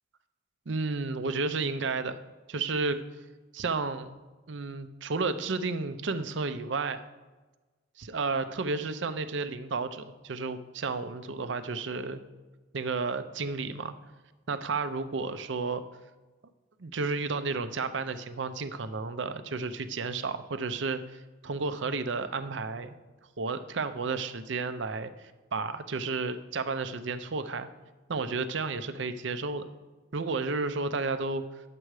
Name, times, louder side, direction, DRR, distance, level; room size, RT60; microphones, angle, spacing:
voice 1, 0.7-2.2 2.5-3.0 3.5-4.1 4.5-7.0 8.0-12.2 12.7-13.9 14.5-15.8 16.8-23.0 23.4-25.1 25.5-27.7 28.1-29.7 30.1-31.4, right 4 dB, 65° right, 10 dB, 0.6 m, -32 dB
10.0 x 7.6 x 4.8 m, 1.2 s
head